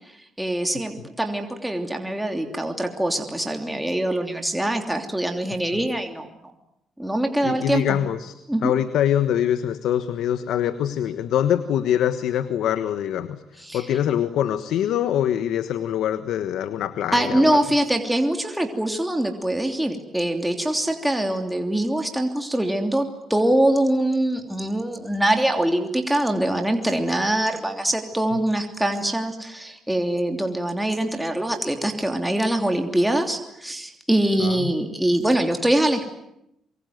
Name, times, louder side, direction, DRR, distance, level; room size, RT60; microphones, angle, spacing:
voice 1, 0.4-6.3 7.0-8.0 8.5-8.7 13.6-13.9 17.1-36.1, right 1 dB, 5° right, 4 dB, 3.1 m, -23 dB
voice 2, 7.4-8.3 8.6-17.6 28.3-28.4 34.4-34.7, left 10 dB, 80° left, 11 dB, 1.4 m, -24 dB
25.5 x 24.0 x 9.5 m, 0.80 s
cardioid pair, 90°, 0 cm